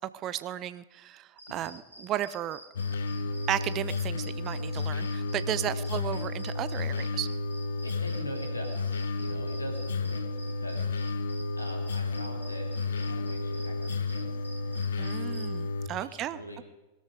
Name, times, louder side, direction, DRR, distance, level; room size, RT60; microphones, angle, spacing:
voice 1, 0.1-2.6 3.5-7.3 15.0-16.4, right 12 dB, 35° right, 16 dB, 0.6 m, -34 dB
sound 1, 1.4-15.5, right 1 dB, 85° right, 2.3 m, -49 dB
sound 2, 2.7-15.9, left 3 dB, 65° left, 0.9 m, -32 dB
voice 2, 5.5-5.9 7.8-11.2 11.6-14.3 14.6-15.2 15.9-16.6, left 1 dB, 80° left, 3 dB, 2.8 m, -44 dB
21.0 x 13.0 x 5.1 m, 1.1 s
figure-of-eight pair, 90°, 0 cm